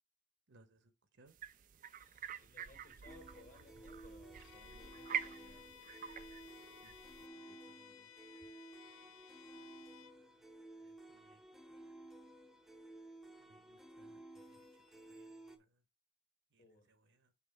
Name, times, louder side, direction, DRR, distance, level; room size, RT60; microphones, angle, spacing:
voice 1, 0.5-1.4 6.3-6.4 6.8-8.1 9.1-10.5 10.8-11.4 11.7-12.1 13.4-15.8 16.5-17.3, right 2 dB, 55° right, 0.8 m, -70 dB
sound 1, 1.4-7.3, right 8 dB, 40° right, 0.4 m, -46 dB
voice 2, 1.9-5.7 16.6-16.9, left 2 dB, 40° left, 1.7 m, -63 dB
sound 2, 3.1-15.6, right 1 dB, ahead, 0.6 m, -55 dB
Bowed string instrument, 4.4-10.2, left 9 dB, 75° left, 0.4 m, -59 dB
5.9 x 3.8 x 5.2 m
head